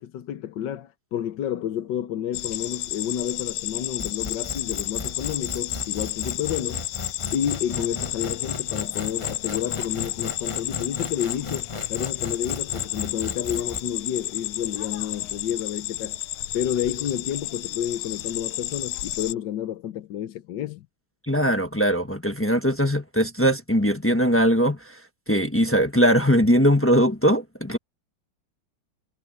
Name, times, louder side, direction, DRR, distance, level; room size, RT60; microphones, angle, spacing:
voice 1, 0.0-6.8 7.3-16.2 16.5-20.9, left 10 dB, 65° left, 1.3 m, -30 dB
sound 1, 2.3-19.3, left 15 dB, 80° left, 1.5 m, -32 dB
sound 2, 4.0-13.8, left 4 dB, 40° left, 0.4 m, -35 dB
voice 2, 21.3-25.0 25.3-27.8, equal, 10° left, 0.7 m, -20 dB
omnidirectional pair, 2.4 m